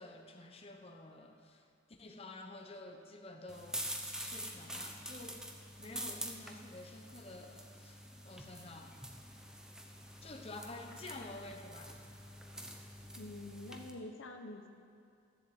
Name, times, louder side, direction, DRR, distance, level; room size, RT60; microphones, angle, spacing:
voice 1, 0.0-3.9 4.2-5.5 5.8-9.0 10.2-12.0, left 2 dB, 30° left, 3 dB, 1.0 m, -50 dB
sound 1, 3.5-13.9, right 1 dB, 5° right, 0.8 m, -46 dB
voice 2, 13.1-14.7, left 2 dB, 85° left, 4 dB, 1.0 m, -47 dB
13.5 x 7.5 x 7.9 m, 2.5 s
head